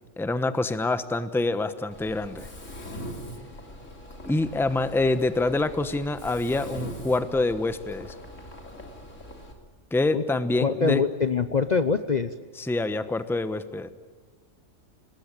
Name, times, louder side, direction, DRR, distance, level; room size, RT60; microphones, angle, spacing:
voice 1, 0.2-2.5 4.2-8.1 9.9-11.0 12.6-13.9, left 2 dB, ahead, 11 dB, 0.9 m, -26 dB
Mechanisms, 1.9-9.5, equal, 75° left, 3.6 m, -41 dB
voice 2, 10.6-12.3, left 5 dB, 40° left, 10 dB, 0.8 m, -24 dB
27.0 x 20.0 x 9.0 m, 1.5 s
omnidirectional pair, 1.3 m